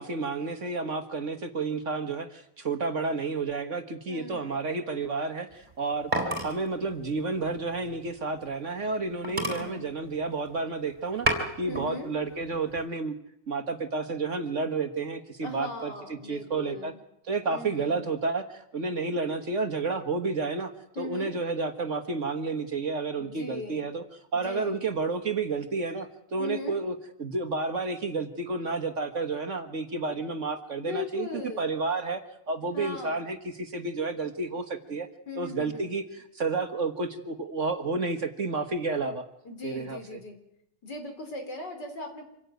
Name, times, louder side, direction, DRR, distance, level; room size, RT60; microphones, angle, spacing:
voice 1, 0.0-11.3 11.6-13.1 13.5-16.9 17.2-24.0 24.3-26.9 27.2-35.1 35.4-39.2 39.6-40.2, right 3 dB, 45° right, 8 dB, 1.6 m, -31 dB
voice 2, 4.1-4.6 9.4-9.9 11.7-12.1 15.4-17.0 17.5-18.1 21.0-21.4 23.2-23.9 24.3-24.8 26.4-26.8 30.8-31.7 32.7-33.2 35.3-35.9 39.4-40.4 40.8-42.2, left 3 dB, 70° left, 5 dB, 4.4 m, -39 dB
sound 1, 5.5-8.6 8.9-9.0 9.2-10.6 11.0-11.9 12.3-12.8, right 1 dB, 25° right, 4.1 m, -32 dB
26.0 x 16.5 x 9.2 m, 0.78 s
omnidirectional pair, 1.9 m